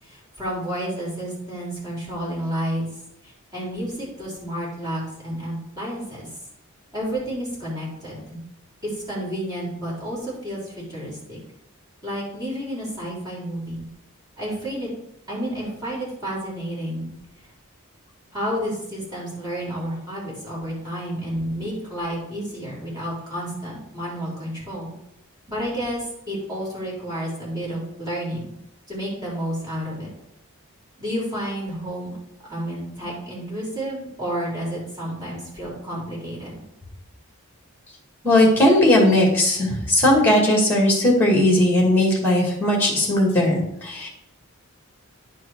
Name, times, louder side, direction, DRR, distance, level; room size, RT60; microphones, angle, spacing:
voice 1, 0.0-2.9 3.2-6.3 6.9-8.4 8.8-11.4 12.0-13.9 14.4-14.9 15.3-17.1 18.3-24.9 25.5-28.5 28.9-30.1 31.0-32.1 32.4-36.6, equal, 15° right, -6 dB, 3.4 m, -30 dB
voice 2, 38.2-44.1, left 1 dB, 10° left, -1 dB, 2.1 m, -18 dB
10.5 x 4.6 x 4.7 m, 0.80 s
head